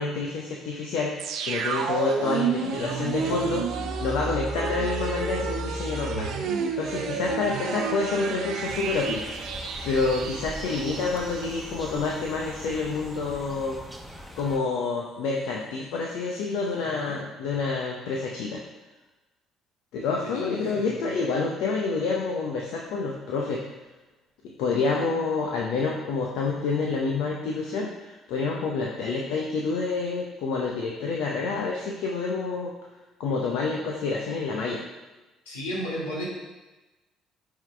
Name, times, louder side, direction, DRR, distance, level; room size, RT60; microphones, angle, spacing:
voice 1, 0.0-6.3 6.8-9.2 9.8-13.8 14.4-18.6 19.9-23.6 24.6-32.7 33.2-34.8, left 4 dB, 70° left, -1 dB, 0.7 m, -28 dB
sound 1, 1.2-12.0 12.3-12.4, right 5 dB, 65° right, 0.6 m, -30 dB
sound 2, 8.6-14.6, equal, ahead, 1.0 m, -41 dB
voice 2, 20.3-21.0 35.4-36.3, equal, 85° left, -4 dB, 1.5 m, -34 dB
8.9 x 3.8 x 3.3 m, 1.1 s
hypercardioid pair, 55°, 0 cm